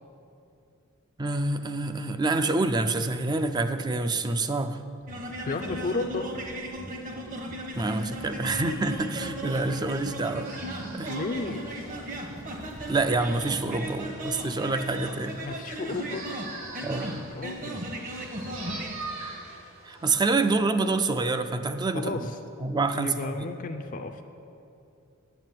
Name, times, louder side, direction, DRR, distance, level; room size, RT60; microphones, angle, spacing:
voice 1, 1.2-4.8 7.8-10.5 10.9-11.1 12.9-15.4 16.8-17.3 19.8-22.3 22.6-23.3, right 3 dB, 20° right, 10 dB, 0.4 m, -27 dB
sound 1, 5.1-19.0, right 1 dB, 40° right, 1.1 m, -37 dB
voice 2, 5.5-6.3 11.1-11.7 15.4-16.3 17.3-17.9 21.9-22.4 22.9-24.2, left 3 dB, 40° left, 6 dB, 0.5 m, -33 dB
sound 2, 7.8-20.3, right 3 dB, 70° right, 2.3 m, -45 dB
9.3 x 8.3 x 7.5 m, 2.7 s
head